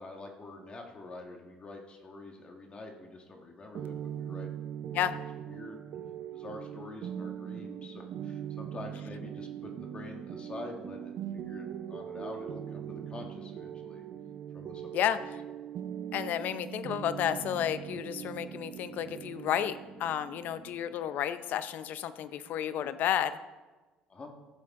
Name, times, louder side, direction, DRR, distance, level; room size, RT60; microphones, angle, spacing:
voice 1, 0.0-4.5 4.9-5.8 6.3-14.0 14.5-14.9 24.1-24.3, left 2 dB, 35° left, 2 dB, 1.7 m, -46 dB
sound 1, 3.7-23.3, right 9 dB, 60° right, 0.6 m, -41 dB
voice 2, 16.1-23.4, left 10 dB, 65° left, 13 dB, 0.7 m, -31 dB
15.0 x 7.4 x 3.7 m, 1.2 s
supercardioid pair, 85°, 3 cm